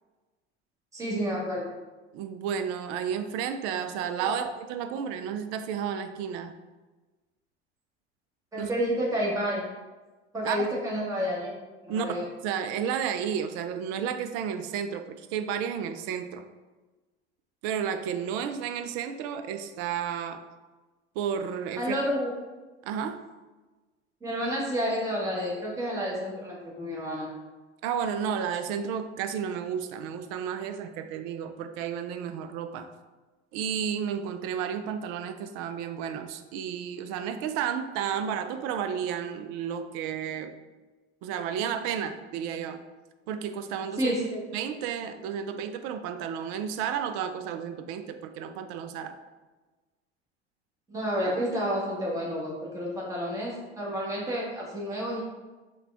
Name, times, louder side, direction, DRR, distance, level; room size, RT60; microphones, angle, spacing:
voice 1, 0.9-1.7 4.2-4.3 8.5-9.6 10.3-11.5 11.8-12.2 21.8-22.3 24.2-27.3 44.0-44.2 50.9-55.2, equal, 10° right, -5 dB, 1.2 m, -30 dB
voice 2, 2.1-6.5 8.6-8.7 10.4-10.7 11.9-12.1 12.4-16.5 17.6-20.4 21.2-21.9 22.8-23.2 27.8-32.9 33.5-40.5 41.2-42.8 43.3-44.1 44.5-49.2, right 8 dB, 45° right, 9 dB, 0.5 m, -32 dB
5.6 x 2.3 x 3.5 m, 1.2 s
figure-of-eight pair, 75°, 33 cm